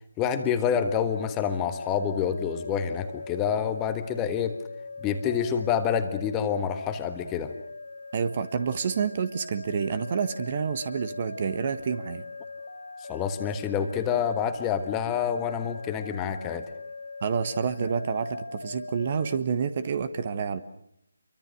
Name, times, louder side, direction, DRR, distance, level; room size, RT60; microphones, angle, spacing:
voice 1, 0.2-4.6 5.0-7.5 13.1-16.6, left 8 dB, 15° left, 8 dB, 1.5 m, -27 dB
sound 1, 0.8-19.4, left 3 dB, 65° left, 1.7 m, -41 dB
voice 2, 8.1-12.2 17.2-20.6, right 6 dB, 35° right, 12 dB, 1.5 m, -28 dB
28.5 x 24.0 x 6.5 m, 0.76 s
figure-of-eight pair, 150°, 0 cm